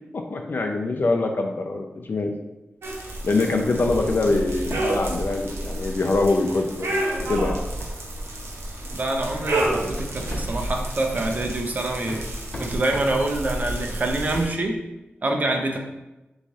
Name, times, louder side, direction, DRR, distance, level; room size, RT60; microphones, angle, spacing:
voice 1, 0.1-2.3 3.2-6.9 7.3-7.6, left 3 dB, 55° left, 3 dB, 0.5 m, -24 dB
sound 1, 2.8-14.5, right 1 dB, 85° right, 0.8 m, -30 dB
sound 2, 3.8-4.0 4.2-5.0 6.6-6.7 7.2-7.3 7.8-8.0 8.8-8.9 9.4-10.5 11.6-11.7 12.1-13.8, left 1 dB, 30° left, 1.2 m, -36 dB
voice 2, 8.9-12.2 12.6-14.8 15.2-15.8, right 2 dB, 40° right, 2 dB, 0.5 m, -26 dB
4.0 x 3.1 x 3.6 m, 1.0 s
wide cardioid pair, 130°, 4 cm